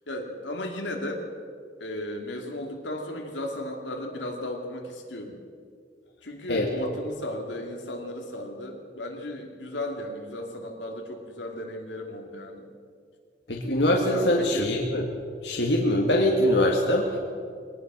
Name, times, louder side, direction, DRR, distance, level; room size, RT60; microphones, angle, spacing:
voice 1, 0.1-1.3 1.8-5.4 6.2-12.7 14.1-14.7, left 1 dB, 85° left, 2 dB, 2.6 m, -35 dB
voice 2, 13.5-15.1 15.4-17.2, left 1 dB, 70° left, 0 dB, 2.0 m, -23 dB
22.5 x 18.5 x 6.2 m, 2.2 s
head